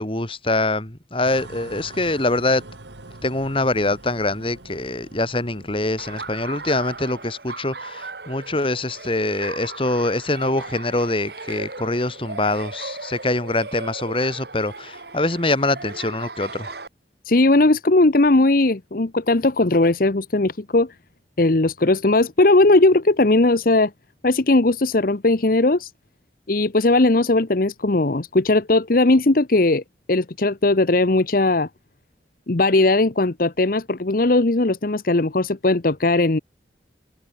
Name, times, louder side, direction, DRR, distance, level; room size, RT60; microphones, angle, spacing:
voice 1, 0.0-2.6 3.2-16.7, left 2 dB, 30° left, 2.7 m, -24 dB
sound 1, 1.2-7.2, right 2 dB, 85° right, 2.4 m, -43 dB
Laughter, 6.0-16.9, right 3 dB, 65° right, 3.2 m, -37 dB
voice 2, 17.2-20.9 21.4-23.9 24.2-25.9 26.5-29.8 30.1-31.7 32.5-36.4, left 2 dB, 55° left, 1.0 m, -18 dB
head